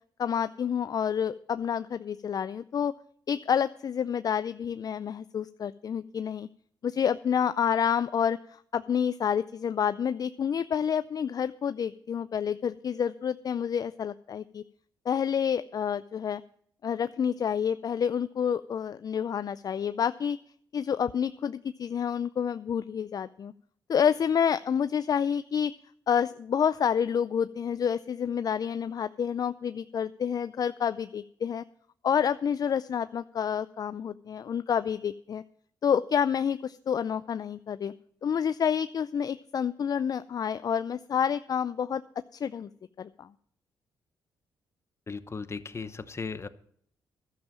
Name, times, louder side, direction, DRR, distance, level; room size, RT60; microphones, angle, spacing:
voice 1, 0.2-2.9 3.3-6.5 6.8-14.6 15.1-16.4 16.8-20.4 20.7-23.5 23.9-25.7 26.1-31.6 32.0-35.4 35.8-37.9 38.2-42.0 42.3-42.7 43.0-43.3, left 8 dB, 45° left, 13 dB, 0.4 m, -28 dB
voice 2, 45.1-46.5, left 4 dB, 30° left, 13 dB, 0.9 m, -36 dB
12.0 x 7.3 x 7.5 m, 0.64 s
supercardioid pair, 65°, 9 cm